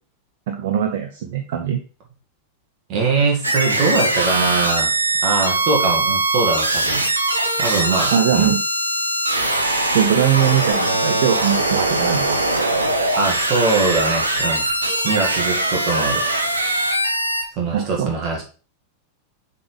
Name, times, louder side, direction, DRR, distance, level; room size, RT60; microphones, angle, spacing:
voice 1, 0.5-1.8 8.1-8.6 9.9-12.4 17.7-18.1, right 9 dB, 55° right, 6 dB, 0.7 m, -20 dB
voice 2, 2.9-4.9 5.2-7.1 7.6-8.5 13.1-14.6 15.0-16.2 17.6-18.4, right 3 dB, 35° right, 0 dB, 2.1 m, -22 dB
sound 1, 3.4-17.4, right 2 dB, 80° right, 0.9 m, -21 dB
6.7 x 4.2 x 3.4 m, 0.38 s
figure-of-eight pair, 90°, 0 cm